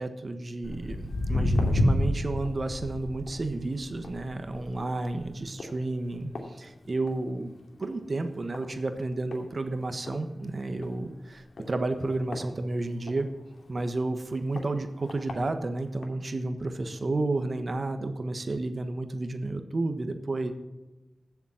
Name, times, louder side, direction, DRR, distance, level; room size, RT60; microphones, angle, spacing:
voice 1, 0.0-7.5 7.8-13.3 13.7-20.5, right 2 dB, 50° right, 8 dB, 1.3 m, -31 dB
Walk footsteps, 0.6-7.3 7.6-8.0 8.5-8.6 9.3-9.4 9.8-9.9 10.1-10.2 10.7-10.9 11.6-13.2 13.7-13.8 14.6-14.7 15.1-15.3 16.0-16.1, left 1 dB, 80° left, 2.4 m, -30 dB
15.5 x 7.3 x 5.8 m, 1.1 s
wide cardioid pair, 75°, 0 cm